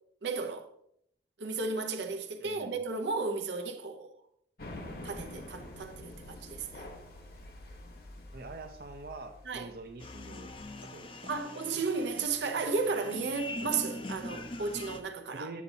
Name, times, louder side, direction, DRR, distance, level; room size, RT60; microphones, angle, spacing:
voice 1, 0.2-0.7 1.4-4.1 5.0-6.9 9.5-9.7 11.3-15.5, right 4 dB, 85° right, 0.8 m, -34 dB
voice 2, 2.4-2.7 8.3-10.5 10.8-11.3 15.3-15.6, right 2 dB, 55° right, 0.6 m, -45 dB
sound 1, 4.6-9.9, left 1 dB, 55° left, 1.0 m, -46 dB
sound 2, 10.0-15.0, left 2 dB, 30° left, 0.5 m, -42 dB
8.2 x 7.0 x 2.7 m
head